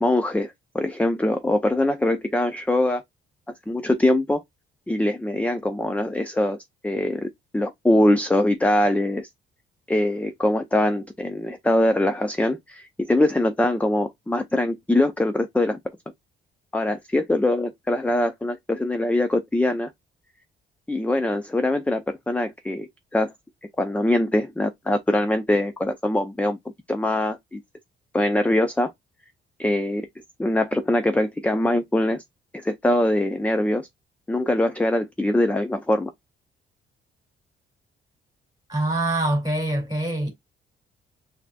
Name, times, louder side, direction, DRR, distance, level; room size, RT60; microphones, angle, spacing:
voice 1, 0.0-3.0 3.7-4.4 4.9-6.6 6.8-9.3 9.9-15.8 16.7-19.9 20.9-23.3 23.8-26.6 26.9-27.6 28.1-28.9 29.6-30.1 30.4-32.2 32.5-33.9 34.3-36.1, left 1 dB, 5° left, 0.5 m, -23 dB
voice 2, 38.7-40.3, right 1 dB, 20° right, 2.3 m, -24 dB
7.0 x 2.9 x 2.3 m
cardioid pair, 90°, 20 cm